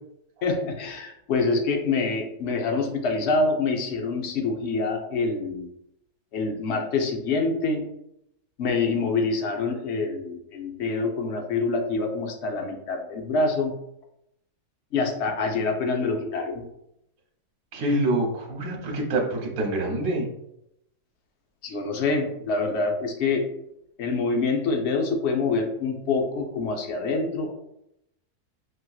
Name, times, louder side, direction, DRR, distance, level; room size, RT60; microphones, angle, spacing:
voice 1, 0.4-5.7 6.3-7.8 8.6-13.7 14.9-16.6 21.6-23.4 24.0-27.5, left 3 dB, 55° left, 3 dB, 0.9 m, -26 dB
voice 2, 17.7-20.3, right 1 dB, 65° right, 0 dB, 1.4 m, -26 dB
6.7 x 2.9 x 2.3 m, 0.80 s
omnidirectional pair, 1.7 m